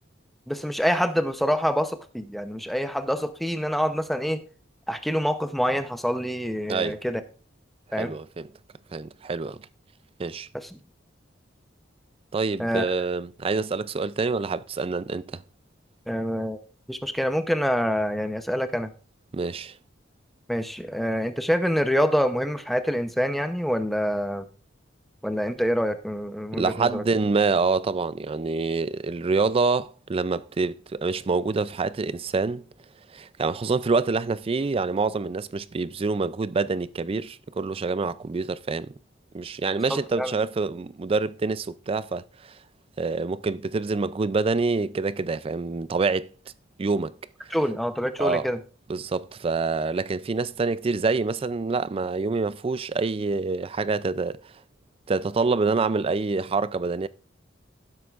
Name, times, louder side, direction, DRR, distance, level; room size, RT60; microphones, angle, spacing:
voice 1, 0.5-4.4 4.9-7.2 7.9-8.2 10.5-10.8 12.6-12.9 16.1-16.6 16.9-18.9 20.5-24.5 25.2-27.0 39.9-40.3 47.5-48.6, equal, ahead, 0.7 m, -26 dB
voice 2, 8.0-8.5 8.9-9.6 10.2-10.5 12.3-15.4 19.3-19.7 26.5-32.6 33.1-38.9 39.3-42.6 43.0-46.3 46.8-47.2 48.2-48.5 48.9-54.4 55.1-57.1, right 4 dB, 30° right, 0.4 m, -26 dB
15.5 x 7.8 x 2.5 m
head